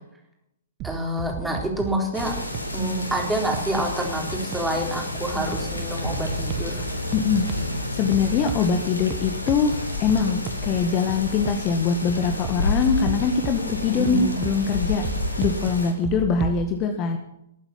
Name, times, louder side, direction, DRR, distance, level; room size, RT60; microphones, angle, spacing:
voice 1, 0.8-2.3 2.7-6.8 13.9-14.4, right 1 dB, 5° right, 0 dB, 4.1 m, -27 dB
sound 1, 0.8-16.6, right 9 dB, 30° right, 1.3 m, -36 dB
sound 2, 2.1-15.9, left 2 dB, 85° left, 3.5 m, -30 dB
voice 2, 7.1-15.1 15.4-17.2, left 6 dB, 30° left, 6 dB, 1.6 m, -23 dB
20.0 x 8.9 x 7.5 m, 0.80 s
figure-of-eight pair, 115°, 0 cm